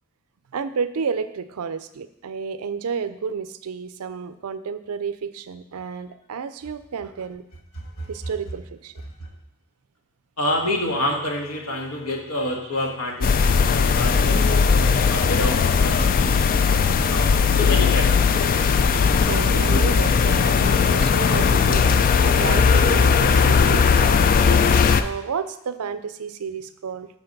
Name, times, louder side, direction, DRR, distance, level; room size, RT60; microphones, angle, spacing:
voice 1, 0.5-7.4 8.1-8.9 19.3-24.2 25.0-27.1, right 6 dB, 80° right, 13 dB, 0.5 m, -31 dB
voice 2, 10.4-14.4 15.1-16.1 16.6-18.3, left 1 dB, 70° left, 1 dB, 1.5 m, -28 dB
sound 1, 13.2-25.0, left 5 dB, 40° left, 0.3 m, -18 dB
8.1 x 4.0 x 5.3 m, 0.81 s
head